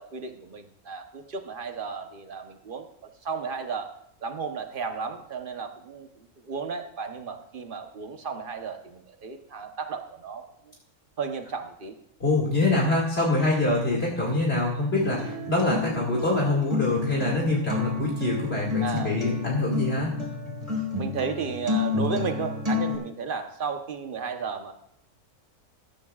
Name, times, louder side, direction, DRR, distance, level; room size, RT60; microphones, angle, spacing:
voice 1, 0.0-3.9 4.2-10.7 11.2-12.0 13.9-14.1 18.8-19.2 21.0-24.7, right 5 dB, 40° right, 6 dB, 1.1 m, -34 dB
voice 2, 12.2-20.2, left 2 dB, 45° left, -4 dB, 2.4 m, -25 dB
Acoustic guitar, 15.0-23.0, left 3 dB, 25° right, 2.0 m, -30 dB
14.5 x 13.5 x 2.4 m, 0.72 s
omnidirectional pair, 1.5 m